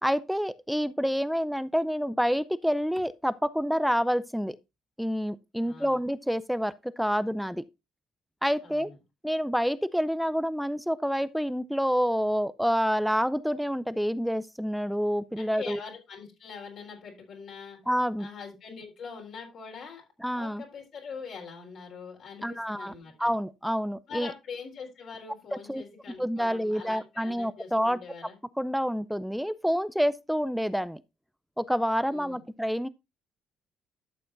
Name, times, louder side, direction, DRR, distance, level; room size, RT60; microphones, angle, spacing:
voice 1, 0.0-4.6 5.0-7.6 8.4-8.9 9.2-15.8 17.9-18.3 20.2-20.6 22.4-22.9 23.2-24.3 25.5-25.8 26.2-28.0 28.6-31.0 31.6-32.9, equal, ahead, 0.4 m, -28 dB
voice 2, 5.6-6.0 8.6-9.0 15.4-17.8 18.2-20.0 20.3-23.3 24.1-28.4 32.0-32.4, left 5 dB, 55° left, 3.8 m, -43 dB
12.0 x 6.9 x 2.6 m
cardioid pair, 125°, 0 cm